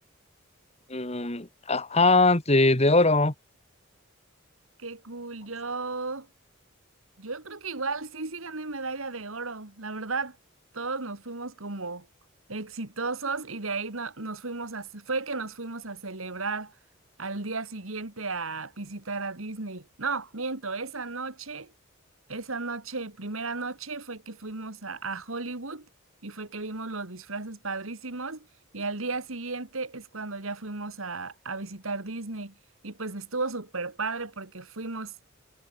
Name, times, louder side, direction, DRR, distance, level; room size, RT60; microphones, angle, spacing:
voice 1, 0.9-3.3, left 2 dB, 30° left, 2.4 m, -21 dB
voice 2, 4.8-6.3 7.2-10.4 10.7-12.1 12.5-16.7 17.2-21.7 22.3-25.9 26.2-28.5 28.7-32.5 32.8-35.1, right 3 dB, 75° right, 2.4 m, -34 dB
head